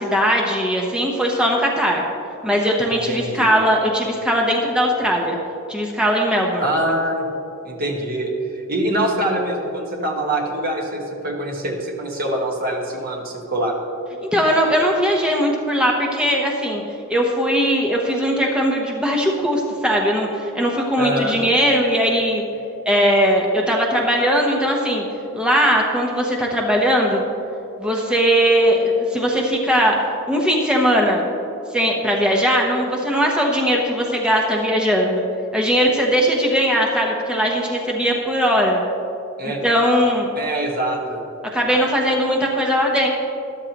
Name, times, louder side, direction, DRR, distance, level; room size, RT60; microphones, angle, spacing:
voice 1, 0.0-2.0 2.4-5.4 5.7-6.7 14.2-16.8 17.1-22.4 22.9-25.1 25.3-27.3 27.8-29.9 30.3-31.2 31.7-35.2 35.5-38.8 39.6-40.3 41.5-43.1, equal, 5° right, -1 dB, 0.9 m, -19 dB
voice 2, 3.0-3.5 6.6-7.3 7.6-13.7 21.0-21.4 39.4-39.6 40.4-41.2, right 1 dB, 40° right, 0 dB, 1.4 m, -24 dB
13.0 x 11.0 x 2.9 m, 2.7 s
head